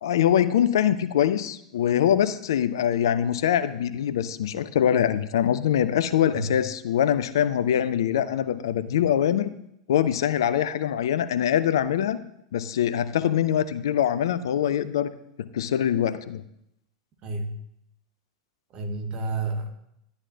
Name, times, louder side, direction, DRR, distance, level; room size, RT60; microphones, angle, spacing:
voice 1, 0.0-9.5 9.9-12.2 12.5-15.1 15.5-16.4, left 10 dB, 60° left, 14 dB, 0.5 m, -23 dB
voice 2, 17.2-17.5 18.7-19.7, right 2 dB, 35° right, 3 dB, 1.8 m, -30 dB
11.5 x 9.7 x 2.8 m, 0.78 s
figure-of-eight pair, 90°, 3 cm